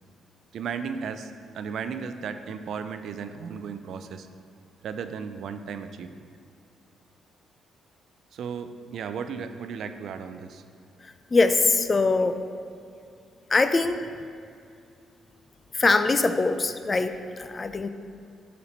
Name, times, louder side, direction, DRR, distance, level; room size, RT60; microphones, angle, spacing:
voice 1, 0.5-4.3 4.8-6.2 8.3-10.6, right 6 dB, 70° right, 9 dB, 0.4 m, -35 dB
voice 2, 11.3-12.4 13.5-14.0 15.7-17.9, left 3 dB, 30° left, 10 dB, 0.4 m, -22 dB
8.1 x 4.4 x 5.1 m, 2.4 s
cardioid pair, 90°, 0 cm